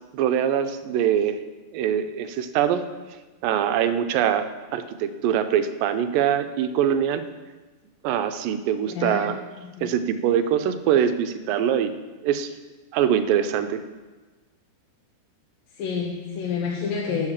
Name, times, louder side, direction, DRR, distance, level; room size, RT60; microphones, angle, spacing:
voice 1, 0.1-1.4 1.7-2.8 3.4-4.5 4.7-7.2 8.0-9.4 9.8-11.9 12.2-12.5 12.9-13.8, right 9 dB, 90° right, 9 dB, 2.4 m, -23 dB
voice 2, 8.9-9.9 15.7-17.3, left 6 dB, 90° left, -2 dB, 2.8 m, -29 dB
10.5 x 6.6 x 7.2 m, 1.3 s
omnidirectional pair, 3.9 m